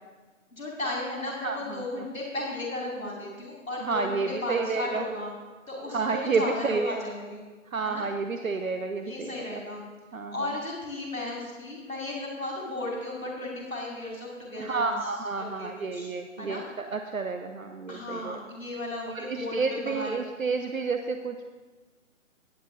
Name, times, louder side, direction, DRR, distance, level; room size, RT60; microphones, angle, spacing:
voice 1, 0.5-5.3 5.7-7.4 7.8-8.0 9.0-9.8 10.3-15.0 15.4-16.6 17.9-20.2, left 2 dB, 85° left, -2 dB, 2.8 m, -35 dB
voice 2, 1.4-2.0 3.8-5.0 5.9-7.0 7.7-9.6 10.1-10.3 14.6-18.4 19.1-21.4, right 4 dB, 80° right, 7 dB, 0.8 m, -30 dB
19.0 x 7.6 x 2.7 m, 1.3 s
figure-of-eight pair, 140°, 40 cm